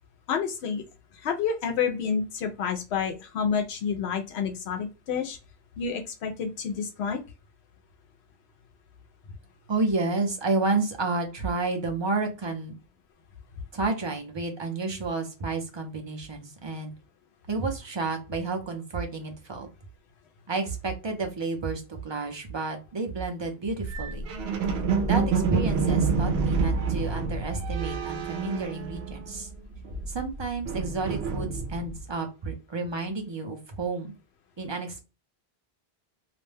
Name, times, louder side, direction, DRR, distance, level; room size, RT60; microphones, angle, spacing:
voice 1, 0.3-0.8 1.2-5.4 5.8-7.2, left 6 dB, 90° left, 4 dB, 0.8 m, -29 dB
voice 2, 9.7-12.8 13.7-16.9 17.5-19.7 20.5-24.3 25.0-29.5 30.1-34.1 34.6-35.0, right 3 dB, 35° right, 3 dB, 0.5 m, -30 dB
sound 1, 23.9-29.5 29.8-32.0, right 5 dB, 80° right, 0.8 m, -28 dB
2.5 x 2.1 x 3.2 m, 0.29 s
omnidirectional pair, 1.0 m